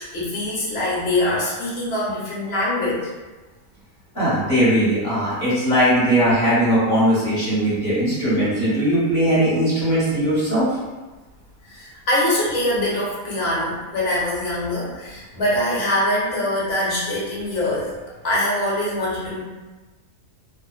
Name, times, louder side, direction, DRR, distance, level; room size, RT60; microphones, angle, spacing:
voice 1, 0.0-3.0 11.7-17.9 18.2-19.4, left 1 dB, 55° left, -6 dB, 0.8 m, -23 dB
voice 2, 4.1-10.7, equal, 35° left, -11 dB, 1.0 m, -19 dB
2.4 x 2.2 x 2.2 m, 1.2 s
omnidirectional pair, 1.6 m